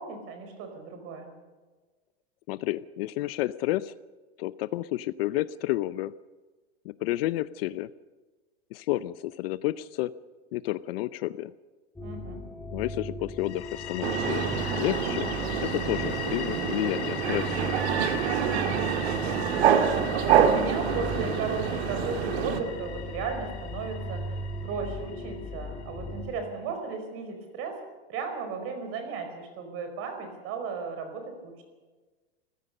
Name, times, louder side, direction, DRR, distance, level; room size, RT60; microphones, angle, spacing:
voice 1, 0.0-1.3 12.0-12.4 18.3-27.8 28.1-31.6, right 4 dB, 40° right, 6 dB, 4.9 m, -36 dB
voice 2, 2.5-3.9 4.4-6.1 6.8-7.9 8.7-10.1 10.5-11.5 12.7-14.5 14.8-15.3 15.6-17.7, left 16 dB, 60° left, 17 dB, 0.7 m, -30 dB
sound 1, 12.0-26.3, left 1 dB, 5° left, 2.8 m, -38 dB
sound 2, 13.4-26.1, left 10 dB, 85° left, 3.1 m, -40 dB
sound 3, 14.0-22.6, right 8 dB, 75° right, 2.0 m, -26 dB
27.0 x 15.5 x 6.6 m, 1.3 s
supercardioid pair, 135°, 33 cm